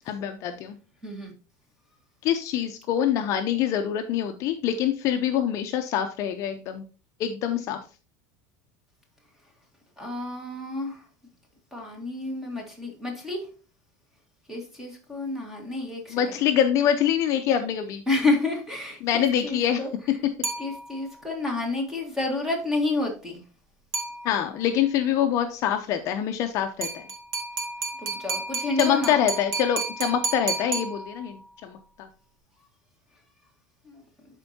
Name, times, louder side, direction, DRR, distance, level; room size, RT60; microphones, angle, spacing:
voice 1, 0.1-0.8 2.2-6.8 7.2-7.8 16.1-18.0 19.0-19.8 20.2-20.3 24.2-27.0 28.8-32.1, left 9 dB, 40° left, 7 dB, 0.6 m, -25 dB
voice 2, 1.0-1.3 10.0-11.0 11.7-13.5 14.5-16.4 18.1-19.9 20.6-23.4 28.0-29.2 33.8-34.0, left 2 dB, 5° right, 1 dB, 1.7 m, -30 dB
sound 1, 20.4-21.2 23.9-24.7 26.8-31.5, right 3 dB, 40° right, 1.4 m, -32 dB
11.5 x 4.4 x 2.8 m, 0.35 s
cardioid pair, 160°, 8 cm